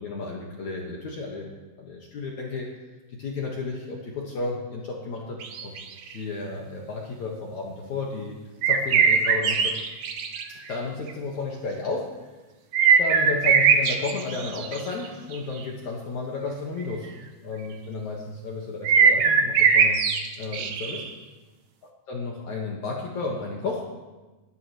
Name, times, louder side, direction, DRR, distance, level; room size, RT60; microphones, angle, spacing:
voice 1, 0.0-1.5 1.8-2.7 3.1-5.7 6.1-8.4 8.7-9.8 10.5-12.1 13.0-20.0 20.4-21.0 21.8-23.8, left 3 dB, 55° left, -2 dB, 2.3 m, -33 dB
sound 1, 5.4-6.1 8.6-10.4 10.7-10.8 11.1-11.2 12.7-15.1 15.3-15.4 18.8-21.1, right 6 dB, 90° right, 1.6 m, -20 dB
29.5 x 12.5 x 3.2 m, 1.2 s
omnidirectional pair, 5.0 m